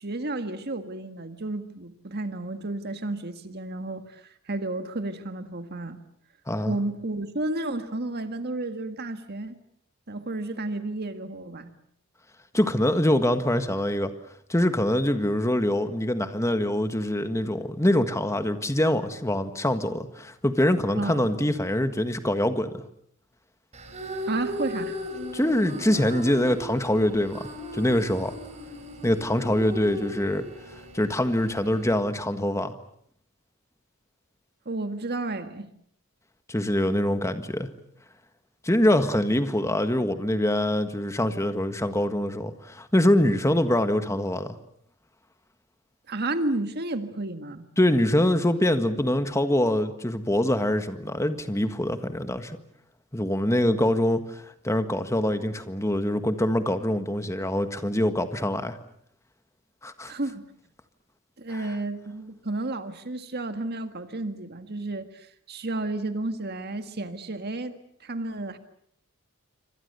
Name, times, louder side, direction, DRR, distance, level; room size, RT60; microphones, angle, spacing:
voice 1, 0.0-6.0 6.7-9.6 10.1-11.7 20.9-21.3 24.3-25.0 34.7-35.7 43.4-43.6 46.1-47.7 60.1-60.4 61.4-67.8 68.0-68.6, right 2 dB, 50° right, 9 dB, 1.8 m, -32 dB
voice 2, 6.5-6.8 12.5-14.1 14.5-22.8 25.3-27.5 27.7-28.3 29.0-30.4 30.9-32.7 36.5-37.7 38.6-44.6 47.8-52.6 53.1-54.2 54.6-58.8 59.8-60.1 61.5-61.6, left 1 dB, 15° left, 9 dB, 1.6 m, -24 dB
sound 1, 23.7-31.9, equal, 30° right, 4.4 m, -37 dB
27.5 x 25.0 x 6.8 m, 0.68 s
head